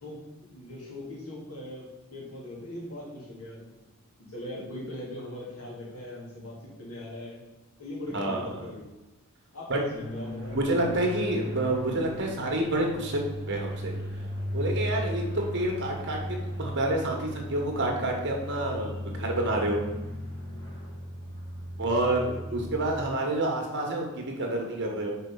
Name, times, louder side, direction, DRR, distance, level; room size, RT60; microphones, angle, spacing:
voice 1, 0.0-3.7 4.3-7.4 7.8-8.9 9.5-10.6 12.1-12.3 18.7-19.1 22.5-22.6 22.8-22.9, left 1 dB, 80° left, -4 dB, 2.6 m, -40 dB
voice 2, 8.1-8.5 9.7-9.8 10.5-13.2 13.5-14.0 14.5-15.2 15.5-19.8 21.8-25.1, right 1 dB, 55° right, 0 dB, 1.5 m, -28 dB
sound 1, 9.9-23.1, equal, 20° left, 1.5 m, -36 dB
5.6 x 4.6 x 5.6 m, 1.1 s
head